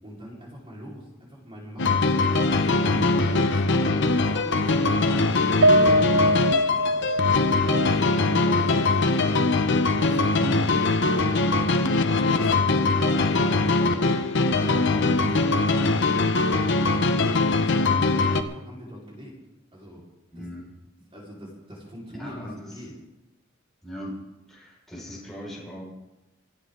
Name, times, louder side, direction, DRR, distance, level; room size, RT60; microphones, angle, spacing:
voice 1, 0.0-2.4 2.6-7.1 7.5-11.6 11.9-16.2 16.5-19.4 19.7-20.0 20.3-20.5 21.1-22.9, equal, 30° right, -4 dB, 4.9 m, -42 dB
sound 1, 1.8-18.4, left 3 dB, 65° left, 1.0 m, -22 dB
voice 2, 2.9-3.3 10.4-10.6 14.6-15.2 20.3-20.7 22.1-22.8 23.8-25.8, equal, ahead, -6 dB, 5.8 m, -38 dB
Piano, 5.6-10.1 10.5-10.6 11.0-11.1, equal, 70° right, 0.6 m, -24 dB
27.5 x 10.0 x 4.0 m, 1.0 s
head